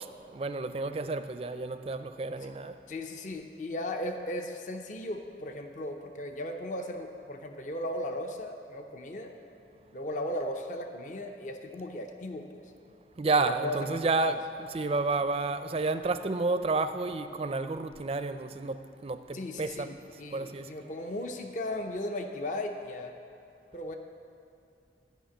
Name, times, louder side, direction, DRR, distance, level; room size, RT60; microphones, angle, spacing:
voice 1, 0.3-2.8 13.2-19.9 20.3-20.7, right 3 dB, 35° right, 0.4 m, -30 dB
voice 2, 2.9-9.3 9.9-12.7 13.4-14.4 19.3-23.1 23.7-24.0, left 1 dB, 45° left, 0.6 m, -36 dB
11.5 x 5.8 x 8.4 m
head